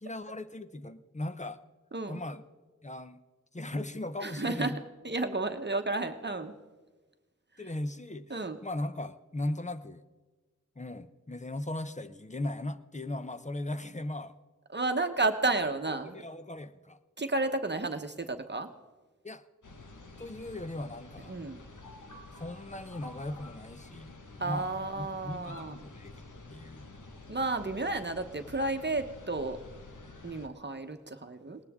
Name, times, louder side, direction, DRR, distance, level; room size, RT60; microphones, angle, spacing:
voice 1, 0.0-1.6 2.1-2.4 2.8-3.2 3.5-4.8 7.6-8.3 8.6-10.0 10.8-14.4 16.0-17.0 19.2-19.4 20.2-21.4 22.4-24.1 24.4-26.2 26.5-26.8, left 1 dB, 25° left, 11 dB, 0.7 m, -38 dB
voice 2, 4.2-4.7 5.0-6.5 8.3-8.6 14.7-16.2 17.2-18.7 21.3-21.6 24.4-25.8 27.3-29.6 30.2-31.6, right 2 dB, 35° right, 7 dB, 1.0 m, -32 dB
sound 1, 19.6-30.5, left 2 dB, 85° left, 1.6 m, -49 dB
20.0 x 19.0 x 3.6 m, 1.3 s
wide cardioid pair, 75°, 30 cm